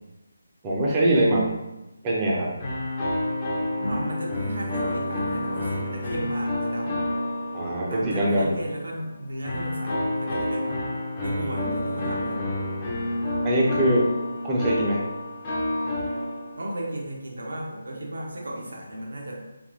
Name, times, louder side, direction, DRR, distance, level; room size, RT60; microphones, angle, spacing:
voice 1, 0.6-1.5 2.0-2.5 7.5-8.5 13.4-14.1 14.4-15.0, right 1 dB, 20° right, -4 dB, 0.6 m, -22 dB
sound 1, 2.6-8.4 9.4-16.8, left 1 dB, 25° left, 0.7 m, -29 dB
voice 2, 3.8-7.1 7.8-10.8 11.2-12.5 16.6-19.4, right 1 dB, 65° right, -2 dB, 0.8 m, -34 dB
3.4 x 2.6 x 2.6 m, 1.0 s
figure-of-eight pair, 150°, 0 cm